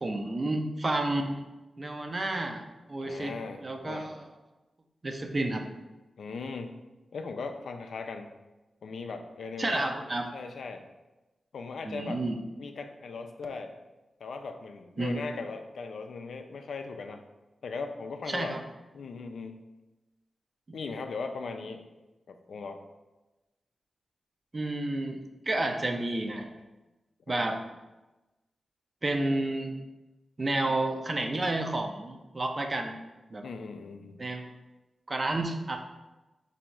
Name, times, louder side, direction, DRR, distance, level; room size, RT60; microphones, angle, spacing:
voice 1, 0.0-1.4 1.8-2.6 2.9-4.2 5.0-5.6 9.6-10.3 11.8-12.4 15.0-15.2 18.3-18.6 20.7-20.8 24.5-26.5 27.3-27.6 29.0-29.7 30.4-32.9 33.3-33.5 34.2-34.5 35.1-35.8, right 2 dB, 40° right, 4 dB, 0.5 m, -30 dB
voice 2, 3.0-4.1 6.2-6.8 7.1-8.3 8.8-9.9 10.3-10.8 11.5-12.2 12.6-13.7 14.2-17.2 17.6-18.5 18.9-19.6 20.7-21.8 22.3-22.8 27.3-27.5 33.4-34.3, left 4 dB, 80° left, 6 dB, 0.3 m, -38 dB
3.0 x 2.6 x 4.4 m, 1.1 s
cardioid pair, 70°, 0 cm